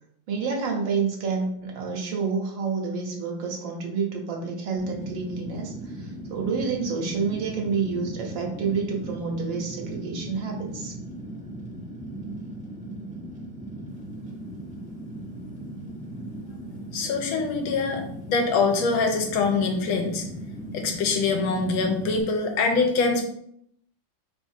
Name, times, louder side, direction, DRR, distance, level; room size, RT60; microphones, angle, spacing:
voice 1, 0.3-10.9, right 5 dB, 70° right, 0 dB, 1.6 m, -29 dB
Fire, 4.8-22.2, right 1 dB, 10° right, 0.3 m, -38 dB
voice 2, 16.9-20.2 20.7-23.2, left 4 dB, 90° left, 4 dB, 1.6 m, -24 dB
4.9 x 3.8 x 2.7 m, 0.71 s
omnidirectional pair, 2.2 m